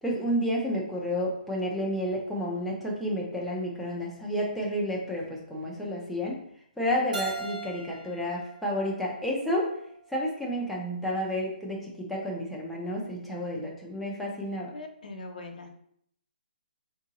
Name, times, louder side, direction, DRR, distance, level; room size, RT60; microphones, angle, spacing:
voice 1, 0.0-6.4 6.8-9.7 10.1-14.7, equal, ahead, -4 dB, 0.3 m, -30 dB
Keyboard (musical), 7.1-10.0, right 4 dB, 50° right, 0.7 m, -40 dB
voice 2, 14.7-15.7, left 2 dB, 50° left, 2 dB, 0.7 m, -41 dB
3.7 x 2.8 x 3.6 m, 0.69 s
hypercardioid pair, 180°, 5 cm